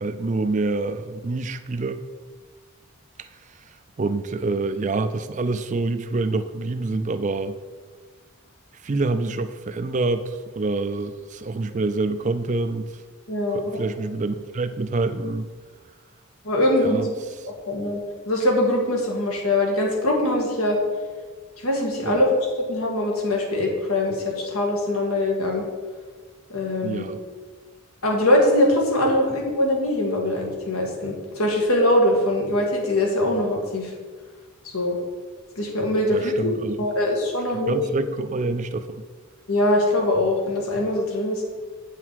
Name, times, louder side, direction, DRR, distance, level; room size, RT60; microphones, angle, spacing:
voice 1, 0.0-2.0 3.2-3.3 4.0-7.6 8.8-12.9 13.5-15.5 16.8-17.1 22.0-22.2 26.8-27.2 36.1-36.8 37.7-39.0, right 3 dB, 35° right, 10 dB, 0.4 m, -26 dB
voice 2, 13.3-13.8 16.4-17.1 17.7-18.0 18.3-20.8 21.6-25.6 26.5-27.2 28.0-33.9 34.7-35.0 35.6-36.5 36.8-37.9 39.5-41.4, left 1 dB, 85° left, 0 dB, 1.8 m, -22 dB
8.3 x 5.7 x 4.7 m, 1.5 s
head